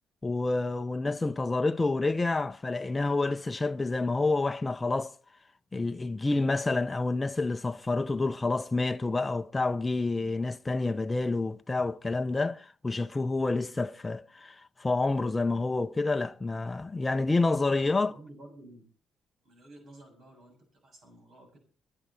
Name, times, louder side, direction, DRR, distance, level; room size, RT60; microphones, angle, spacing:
voice 1, 0.2-5.1 5.7-18.1, left 3 dB, 20° left, 0.6 m, -28 dB
voice 2, 18.0-18.9 19.4-21.6, right 1 dB, 60° right, 6.9 m, -52 dB
23.5 x 11.0 x 4.2 m
cardioid pair, 90°, 0 cm